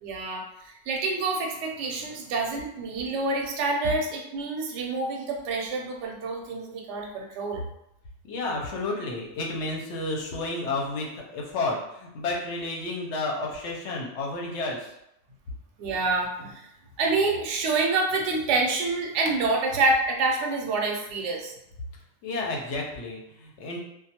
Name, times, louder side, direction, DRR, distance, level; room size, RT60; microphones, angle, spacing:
voice 1, 0.0-7.6 15.8-16.6 17.0-21.5, right 3 dB, 65° right, 0 dB, 0.8 m, -27 dB
voice 2, 8.2-14.9 22.2-23.8, left 2 dB, 65° left, -1 dB, 0.8 m, -31 dB
2.3 x 2.2 x 2.8 m, 0.81 s
omnidirectional pair, 1.4 m